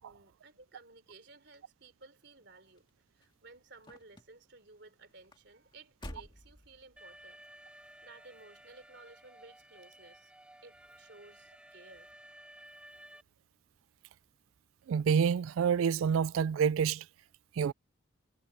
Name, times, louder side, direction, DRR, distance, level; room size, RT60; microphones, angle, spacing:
voice 1, 0.0-2.9 3.1-7.4 8.0-10.3 10.6-12.1, right 3 dB, 55° right, 3.5 m, -56 dB
sound 1, 2.5-7.3 8.0-8.4 8.8-8.9, left 1 dB, 25° left, 2.2 m, -52 dB
Alarm, 7.0-13.2, right 1 dB, 5° right, 1.2 m, -55 dB
voice 2, 14.9-17.0 17.6-17.7, right 7 dB, 90° right, 0.3 m, -27 dB
head